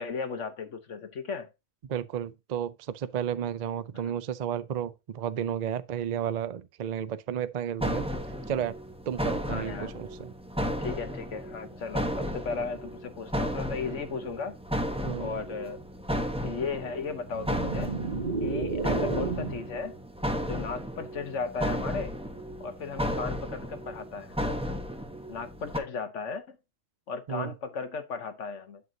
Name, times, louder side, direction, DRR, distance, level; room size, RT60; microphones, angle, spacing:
voice 1, 0.0-1.5 9.5-9.9 10.8-14.5 15.2-15.8 16.4-17.9 18.4-19.9 20.4-22.2 22.6-24.4 25.3-26.6 27.1-28.8, left 5 dB, 60° left, 1.3 m, -35 dB
voice 2, 1.8-8.1 8.5-8.8 9.1-10.3 15.0-15.3 27.3-27.5, right 9 dB, 70° right, 0.4 m, -32 dB
sound 1, 7.8-25.8, equal, 5° right, 0.8 m, -34 dB
sound 2, 17.2-19.8, right 4 dB, 35° right, 2.1 m, -31 dB
8.2 x 7.6 x 2.7 m
omnidirectional pair, 1.5 m